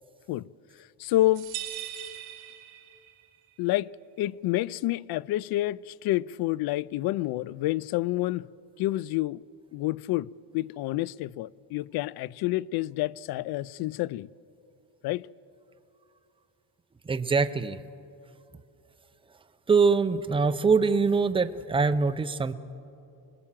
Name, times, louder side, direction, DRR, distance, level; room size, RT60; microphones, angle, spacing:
voice 1, 1.0-1.5 3.6-3.9 4.2-8.5 8.8-9.4 9.7-14.3 15.0-15.3, left 16 dB, 60° left, 0.5 m, -28 dB
sound 1, 1.3-3.3, right 13 dB, 65° right, 2.5 m, -39 dB
voice 2, 17.1-17.8 19.7-22.5, right 4 dB, 15° right, 0.5 m, -23 dB
27.0 x 20.5 x 7.5 m
cardioid pair, 150°, 42 cm